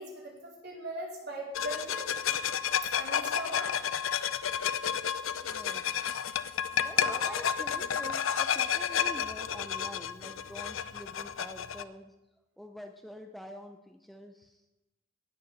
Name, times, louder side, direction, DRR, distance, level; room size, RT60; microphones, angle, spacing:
voice 1, 0.0-2.1 2.8-3.8 6.9-7.4, right 1 dB, 55° right, -2 dB, 4.1 m, -40 dB
sound 1, 1.5-11.8, left 8 dB, 75° left, 0.6 m, -31 dB
voice 2, 5.4-6.1 6.7-12.2 12.6-14.6, equal, ahead, 5 dB, 0.5 m, -47 dB
18.5 x 6.8 x 6.7 m, 1.0 s
head